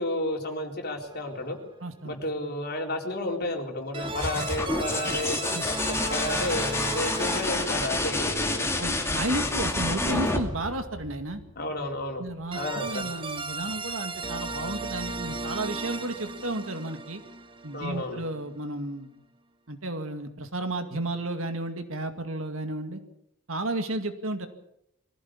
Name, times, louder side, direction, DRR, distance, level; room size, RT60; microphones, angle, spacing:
voice 1, 0.0-1.6 2.0-8.7 11.6-12.2 12.6-13.1 17.7-18.2, left 1 dB, 50° left, 2 dB, 4.1 m, -32 dB
sound 1, 1.0-1.5 3.9-9.8 12.5-18.4, right 2 dB, 25° right, 1.3 m, -36 dB
voice 2, 1.8-2.2 5.5-5.7 8.8-11.4 12.2-17.2 17.6-19.1 19.7-23.0 23.5-24.5, right 2 dB, 65° right, 7 dB, 2.2 m, -33 dB
sound 2, 4.0-11.6 13.4-13.9, left 2 dB, 15° left, 2.7 m, -29 dB
23.5 x 16.0 x 8.7 m, 0.78 s
head